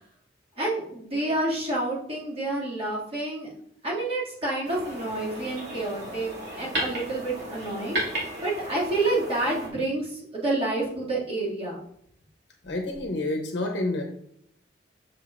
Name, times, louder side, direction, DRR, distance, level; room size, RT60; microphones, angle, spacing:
voice 1, 0.6-3.5 3.8-11.8, right 2 dB, 30° right, -7 dB, 2.3 m, -29 dB
sound 1, 4.6-9.7, right 1 dB, 60° right, 2.2 m, -34 dB
voice 2, 12.6-14.0, left 2 dB, 65° left, 2 dB, 0.8 m, -28 dB
7.6 x 6.3 x 2.5 m, 0.70 s
head